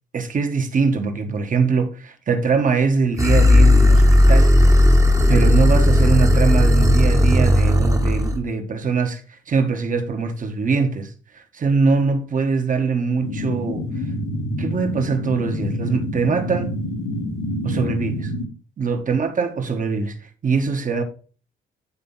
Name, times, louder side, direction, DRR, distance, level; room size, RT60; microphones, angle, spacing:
voice 1, 0.1-4.6 5.3-9.2 9.5-13.9 14.6-16.8 17.6-18.3 18.8-20.2 20.4-21.0, right 4 dB, 40° right, 1.4 m, -22 dB
sound 1, 3.2-8.4, left 1 dB, 15° right, 1.2 m, -14 dB
sound 2, 13.2-18.5, left 1 dB, 80° left, 2.1 m, -27 dB
9.7 x 3.5 x 5.5 m
cardioid pair, 90°, 20 cm